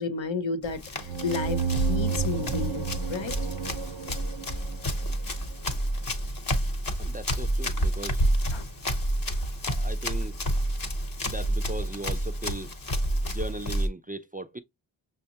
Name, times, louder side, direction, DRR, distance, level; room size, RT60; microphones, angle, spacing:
voice 1, 0.0-3.4 8.5-8.6, left 4 dB, 75° left, 0.8 m, -32 dB
Run, 0.6-13.9, equal, 45° left, 0.9 m, -29 dB
sound 1, 1.0-5.6, right 6 dB, 70° right, 0.7 m, -32 dB
voice 2, 7.0-8.2 9.7-10.4 11.2-12.7 13.3-14.6, right 2 dB, 20° right, 0.3 m, -38 dB
6.2 x 2.2 x 2.8 m
wide cardioid pair, 90°, 46 cm